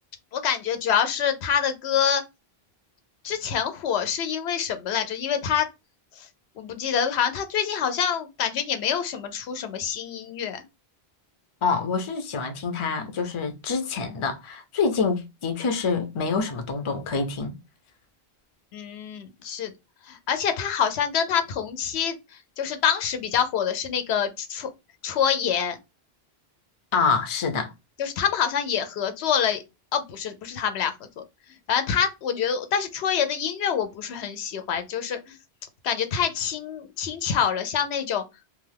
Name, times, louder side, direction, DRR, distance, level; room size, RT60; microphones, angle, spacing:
voice 1, 0.3-2.2 3.2-5.7 6.2-6.3 6.6-10.6 18.7-19.7 20.1-22.2 22.6-24.7 25.0-25.8 28.0-29.6 29.9-30.9 31.7-35.3 35.8-38.2, left 8 dB, 90° left, 0.9 m, -26 dB
voice 2, 11.6-17.5 26.9-27.7, left 5 dB, 40° left, 0.5 m, -26 dB
2.6 x 2.3 x 3.3 m
omnidirectional pair, 1.0 m